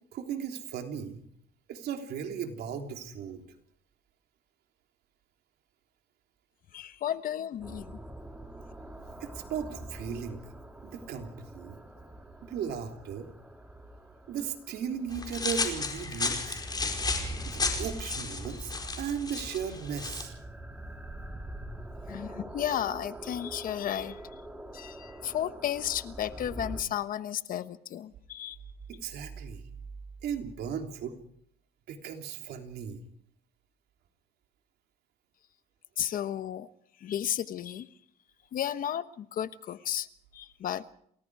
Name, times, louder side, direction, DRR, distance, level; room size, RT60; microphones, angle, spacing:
voice 1, 0.1-1.3 1.7-3.4 9.2-10.4 10.8-11.8 12.4-13.3 14.3-16.6 17.5-20.3 28.9-29.6 30.2-31.2 31.9-33.0, right 7 dB, 70° right, 4 dB, 3.3 m, -36 dB
voice 2, 6.7-8.0 22.1-24.2 24.7-28.6 36.0-36.7 37.0-37.9 38.5-40.1 40.3-40.8, left 10 dB, 55° left, 13 dB, 1.1 m, -33 dB
sound 1, 7.6-26.8, right 1 dB, 10° right, 2.8 m, -44 dB
sound 2, 15.1-20.2, left 4 dB, 25° left, 4.7 m, -33 dB
28.5 x 20.0 x 4.9 m, 0.67 s
cardioid pair, 110°, 17 cm